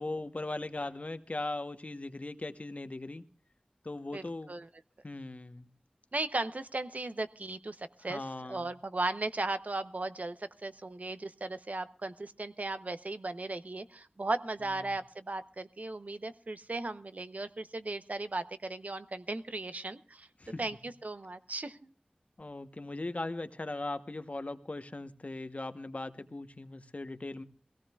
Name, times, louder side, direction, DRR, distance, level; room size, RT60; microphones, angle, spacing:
voice 1, 0.0-3.2 3.8-4.5 5.0-5.7 8.1-8.7 14.8-15.0 20.4-20.6 22.4-27.4, left 2 dB, 55° left, 10 dB, 0.9 m, -39 dB
voice 2, 6.1-8.2 8.5-20.3 20.6-21.9, right 2 dB, 65° right, 11 dB, 0.7 m, -36 dB
22.5 x 17.0 x 2.3 m, 0.39 s
wide cardioid pair, 45°, 3 cm